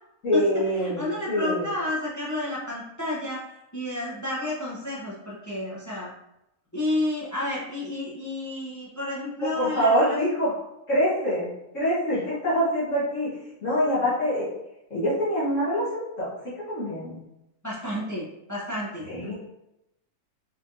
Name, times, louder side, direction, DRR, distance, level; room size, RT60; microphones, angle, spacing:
voice 1, 0.2-1.7 9.6-10.5 10.9-14.5 14.9-16.3 16.6-17.2 19.1-19.3, equal, 55° left, -9 dB, 1.7 m, -25 dB
voice 2, 0.8-3.4 3.7-6.1 6.7-10.2 17.6-19.1, left 1 dB, 15° left, -5 dB, 0.7 m, -31 dB
4.2 x 3.9 x 2.6 m, 0.86 s
omnidirectional pair, 1.6 m